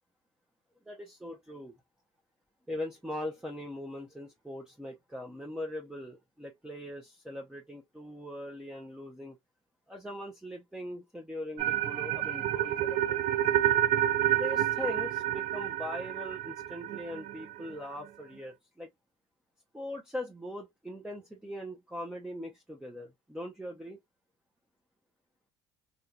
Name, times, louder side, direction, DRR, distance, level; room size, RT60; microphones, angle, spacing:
voice 1, 0.9-1.7 2.7-9.4 9.9-13.4 14.3-18.9 19.7-24.0, left 1 dB, 5° right, 0.6 m, -41 dB
sound 1, 11.6-17.7, right 11 dB, 55° right, 0.4 m, -29 dB
2.6 x 2.4 x 2.2 m
hypercardioid pair, 65°, 15 cm